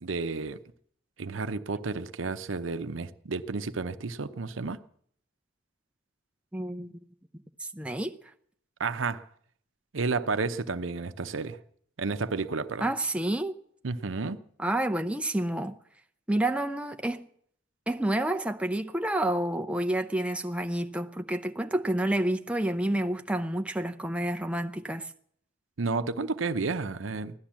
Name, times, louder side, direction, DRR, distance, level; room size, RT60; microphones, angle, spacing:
voice 1, 0.0-0.6 1.2-4.8 8.8-9.2 9.9-11.6 12.0-12.9 13.8-14.4 25.8-27.3, right 4 dB, 85° right, 0.7 m, -31 dB
voice 2, 6.5-6.9 7.7-8.1 12.8-13.5 14.6-15.8 16.3-17.3 17.9-25.1, right 1 dB, 5° right, 0.6 m, -29 dB
16.5 x 12.0 x 7.4 m
head